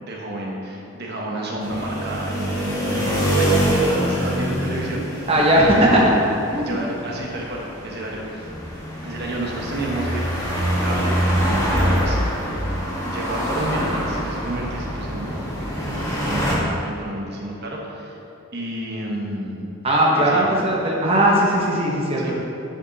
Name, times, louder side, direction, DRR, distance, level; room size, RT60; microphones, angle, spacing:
voice 1, 0.0-5.3 5.6-6.1 6.6-8.5 9.0-10.2 10.5-12.4 13.0-15.5 15.8-18.2 18.5-19.6 20.2-20.5 22.2-22.3, right 1 dB, 45° right, -2 dB, 1.2 m, -30 dB
sound 1, 1.6-16.6, equal, 15° left, 1.5 m, -25 dB
voice 2, 5.3-6.0 6.5-6.8 19.8-22.3, right 1 dB, 25° right, -3 dB, 1.0 m, -18 dB
9.2 x 5.0 x 4.0 m, 2.9 s
head